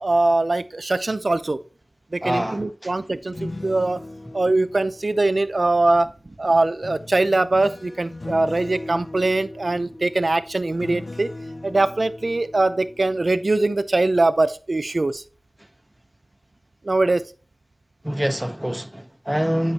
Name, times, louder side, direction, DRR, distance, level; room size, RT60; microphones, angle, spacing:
voice 1, 0.0-1.6 2.1-4.0 4.3-11.3 11.6-15.2 16.8-17.2, right 2 dB, 70° right, 0.5 m, -22 dB
voice 2, 2.2-2.9 18.0-19.7, equal, 10° right, 0.7 m, -25 dB
sound 1, 3.1-6.0 6.8-13.7 14.1-14.4, left 2 dB, 70° left, 0.4 m, -39 dB
8.7 x 5.4 x 2.8 m
wide cardioid pair, 45°, 0 cm